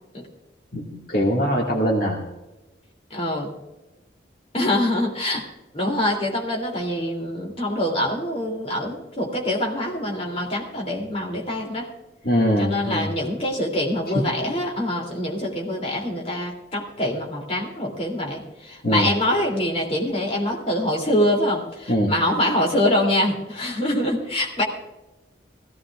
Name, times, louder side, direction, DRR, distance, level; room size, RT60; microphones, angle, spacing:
voice 1, 0.7-2.2 12.2-13.1 14.1-14.2 18.8-19.1 21.9-22.1, equal, 55° left, -2 dB, 2.0 m, -22 dB
voice 2, 3.1-3.5 4.5-5.5 5.7-11.9 12.6-24.6, left 1 dB, 35° left, 0 dB, 2.9 m, -24 dB
19.5 x 15.5 x 2.4 m, 1.0 s
head